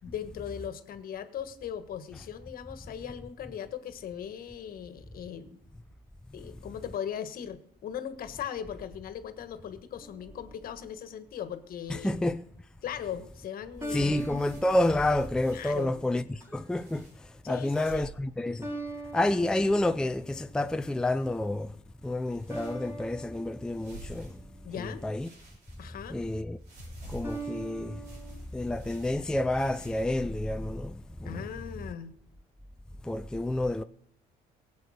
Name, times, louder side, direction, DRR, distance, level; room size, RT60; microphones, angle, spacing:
voice 1, 0.0-5.6 6.3-12.1 12.8-14.2 15.5-15.9 17.4-18.1 24.6-25.0 25.8-26.2 31.2-32.1, left 9 dB, 60° left, 1.5 m, -39 dB
sound 1, 10.0-10.8 13.8-15.8 16.4-16.9 18.6-20.6 22.5-24.9 27.2-28.3, right 2 dB, 15° right, 3.6 m, -42 dB
voice 2, 11.9-12.4 13.9-18.7 19.1-21.7 22.0-24.4 24.8-25.3 26.1-26.6 27.0-28.0 28.5-31.5 33.0-33.8, left 1 dB, 5° left, 0.5 m, -29 dB
sound 2, 13.7-15.9 16.7-17.2 17.6-18.2 18.5-18.6 19.1-19.7 20.8-21.4 22.2-23.1 23.6-24.8 25.2-26.2 26.6-30.1, right 1 dB, 70° right, 5.4 m, -51 dB
16.5 x 8.4 x 6.4 m
cardioid pair, 110°, 17 cm